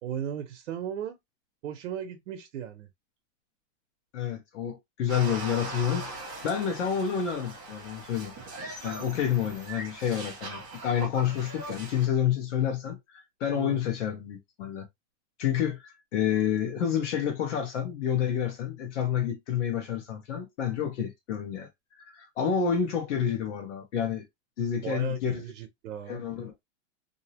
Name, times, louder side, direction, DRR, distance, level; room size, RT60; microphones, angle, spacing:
voice 1, 0.0-1.2 1.6-2.9 13.5-13.8 24.8-26.2, right 9 dB, 85° right, 0.7 m, -36 dB
voice 2, 4.1-8.3 8.8-14.9 15.4-21.7 22.0-24.2 24.6-25.5 26.1-26.5, left 8 dB, 85° left, 0.9 m, -29 dB
sound 1, 5.1-12.1, right 2 dB, 15° right, 0.4 m, -40 dB
2.6 x 2.0 x 2.8 m
supercardioid pair, 175°, 36 cm